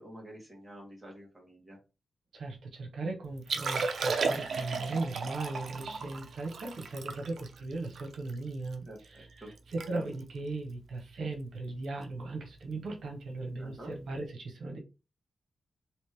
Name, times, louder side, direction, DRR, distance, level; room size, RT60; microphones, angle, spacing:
voice 1, 0.0-1.8 8.8-9.5 13.6-13.9, right 1 dB, 15° right, -3 dB, 1.6 m, -48 dB
voice 2, 2.3-9.5 9.7-14.8, right 3 dB, 90° right, 2 dB, 0.9 m, -38 dB
Liquid, 3.4-8.8 9.2-9.3 9.6-9.9 10.1-10.4 11.0-11.2 12.7-12.8, right 4 dB, 75° right, 0.5 m, -34 dB
3.2 x 2.9 x 3.3 m, 0.30 s
wide cardioid pair, 130°, 0 cm